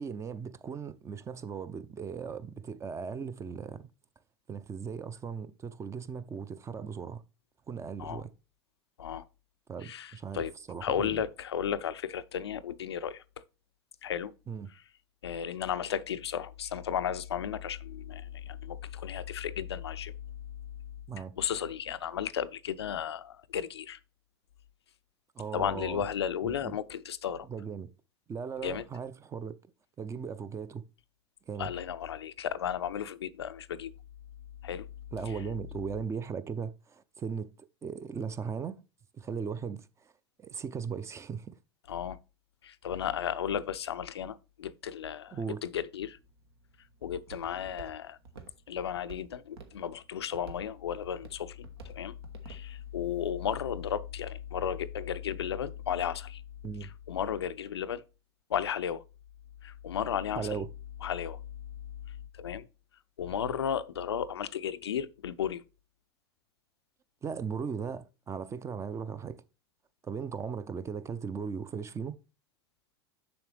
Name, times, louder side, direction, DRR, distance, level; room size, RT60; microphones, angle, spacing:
voice 1, 0.0-3.9 4.5-7.2 7.7-8.3 9.7-11.2 14.5-14.7 21.1-21.4 25.4-26.0 26.4-26.8 27.5-27.9 28.3-29.6 30.0-30.9 31.5-31.7 35.1-37.5 37.8-38.8 39.1-39.9 40.4-41.5 45.3-45.6 56.6-56.9 60.4-60.7 67.2-69.4 70.0-72.2, right 6 dB, 20° right, 0.5 m, -37 dB
voice 2, 9.8-10.5 10.8-13.2 14.0-14.3 14.7-14.8 15.2-20.1 21.4-24.0 25.5-27.5 28.6-28.8 31.6-33.9 34.6-34.9 35.3-35.4 41.9-42.2 42.6-46.2 47.0-48.2 48.7-52.1 52.4-56.4 56.8-58.0 58.5-59.0 59.6-60.6 61.0-61.4 62.1-62.7 63.2-65.6, left 9 dB, 80° left, 0.4 m, -34 dB
Walk footsteps, 45.9-53.9, right 4 dB, 75° right, 1.2 m, -53 dB
7.1 x 6.1 x 3.3 m
figure-of-eight pair, 80°, 13 cm